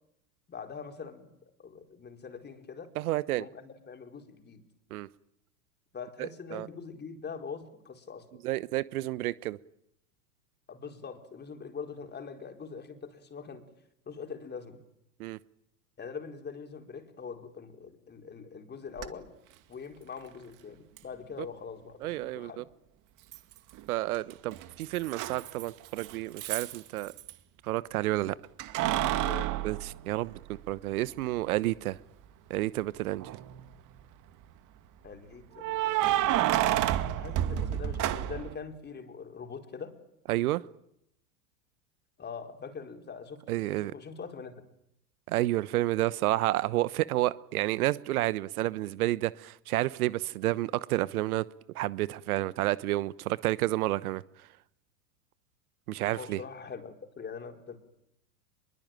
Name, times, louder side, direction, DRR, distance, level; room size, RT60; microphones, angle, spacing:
voice 1, 0.5-1.3 1.6-2.9 3.3-4.6 5.9-8.3 10.7-13.6 14.1-14.8 16.0-19.3 19.7-22.6 29.1-29.6 35.0-36.5 37.2-40.0 42.2-44.6 56.1-57.8, left 5 dB, 20° left, 4.4 m, -43 dB
voice 2, 3.0-3.4 4.9-5.1 6.5-6.7 8.4-9.6 15.2-15.4 22.0-22.6 23.9-27.1 27.6-28.3 29.6-30.4 30.7-32.0 32.5-33.3 40.3-40.6 43.5-43.9 45.3-51.4 51.7-54.2 55.9-56.4, right 16 dB, 65° right, 1.1 m, -30 dB
Keys jangling, 19.0-19.1 21.0-21.1 23.3-23.9 24.1-27.3 28.6-30.7 31.2-31.3 33.1-33.6 35.6-38.6, right 13 dB, 40° right, 2.2 m, -30 dB
26.0 x 22.5 x 9.1 m
hypercardioid pair, 100°, 47 cm